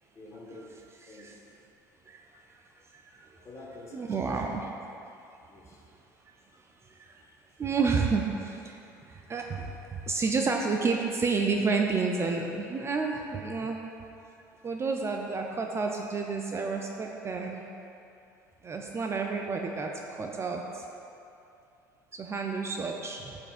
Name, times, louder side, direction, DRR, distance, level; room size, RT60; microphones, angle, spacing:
voice 1, 0.1-0.7 1.1-1.3 2.8-2.9 3.4-4.6 5.4-5.8 7.6-7.7, left 2 dB, 30° left, -2 dB, 1.3 m, -48 dB
voice 2, 2.1-2.6 2.9-3.4 3.9-4.8 6.3-7.2 7.6-13.8 14.6-17.6 18.6-19.9 20.2-20.9 22.1-23.4, right 4 dB, 25° right, 2 dB, 0.5 m, -31 dB
10.5 x 4.4 x 2.5 m, 2.7 s
hypercardioid pair, 65°, 10 cm